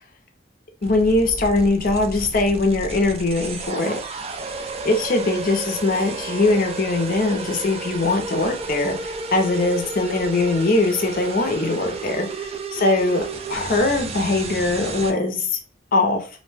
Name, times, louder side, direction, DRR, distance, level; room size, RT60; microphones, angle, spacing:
voice 1, 0.8-4.0 4.8-13.2 13.5-15.6 15.9-16.3, left 2 dB, 50° left, 4 dB, 0.5 m, -21 dB
sound 1, 0.8-15.1, right 3 dB, 35° right, 0.3 m, -32 dB
2.6 x 2.1 x 3.2 m, 0.37 s
head